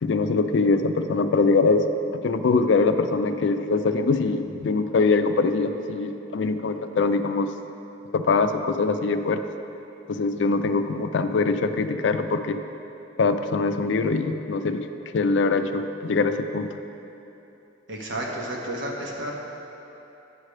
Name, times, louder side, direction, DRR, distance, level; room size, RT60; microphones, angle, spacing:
voice 1, 0.0-1.8 2.1-7.5 8.1-9.4 10.1-12.6 13.2-14.9 15.1-16.7, left 4 dB, 75° left, 9 dB, 0.4 m, -23 dB
voice 2, 17.9-19.3, right 1 dB, 80° right, -2 dB, 1.2 m, -31 dB
9.7 x 3.3 x 6.4 m, 3.0 s
head